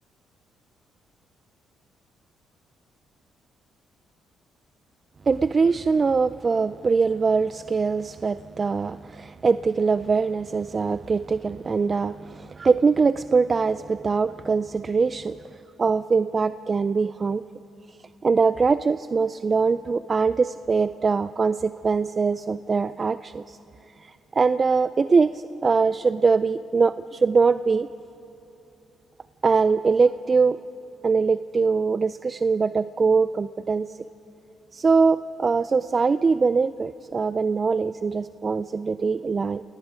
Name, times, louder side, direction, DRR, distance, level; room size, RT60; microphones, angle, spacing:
voice 1, 5.3-15.4 15.8-17.4 18.2-23.6 24.0-27.9 29.4-30.6 31.0-34.0 34.7-39.6, right 4 dB, 35° right, 14 dB, 0.4 m, -22 dB
27.5 x 18.5 x 5.1 m, 2.9 s
cardioid pair, 90°, 0 cm